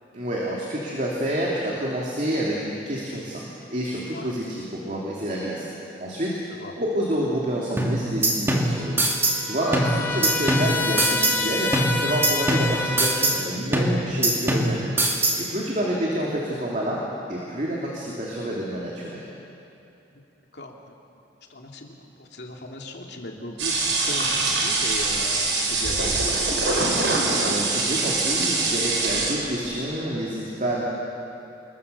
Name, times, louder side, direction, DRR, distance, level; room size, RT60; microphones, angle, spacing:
voice 1, 0.1-5.7 6.0-6.4 6.8-9.1 9.4-14.9 15.4-17.0 17.3-19.2 27.4-30.8, right 1 dB, 40° right, -4 dB, 2.9 m, -28 dB
sound 1, 7.8-9.4 9.7-11.4 11.7-13.4 13.7-15.4, right 1 dB, 15° right, 2.1 m, -23 dB
Trumpet, 8.8-13.5, left 3 dB, 10° left, 1.3 m, -28 dB
voice 2, 21.5-26.2, left 1 dB, 60° left, 0 dB, 2.8 m, -38 dB
sound 2, 23.6-29.7, right 3 dB, 85° right, 4.6 m, -23 dB
27.5 x 21.5 x 6.9 m, 2.8 s
head